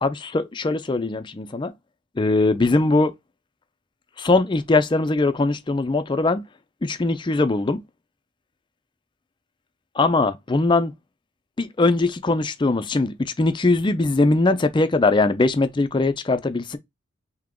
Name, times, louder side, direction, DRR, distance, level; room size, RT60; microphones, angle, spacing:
voice 1, 0.0-1.7 2.2-3.1 4.2-6.4 6.8-7.8 10.0-10.9 11.6-16.8, left 3 dB, 25° left, 0.4 m, -21 dB
3.5 x 2.8 x 3.7 m
head